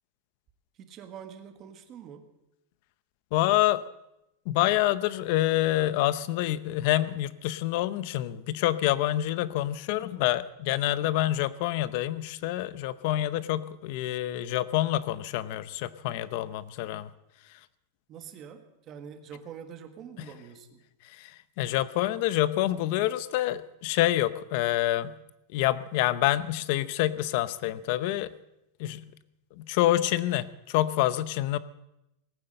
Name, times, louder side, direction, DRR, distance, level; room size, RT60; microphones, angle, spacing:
voice 1, 0.8-2.3 18.1-20.9, right 8 dB, 25° right, 7 dB, 1.5 m, -45 dB
voice 2, 3.3-3.8 4.5-17.1 21.2-25.2 25.5-28.3 28.8-29.0 29.6-31.6, left 14 dB, 45° left, 16 dB, 0.7 m, -27 dB
19.0 x 9.7 x 7.8 m, 0.88 s
supercardioid pair, 175°, 0 cm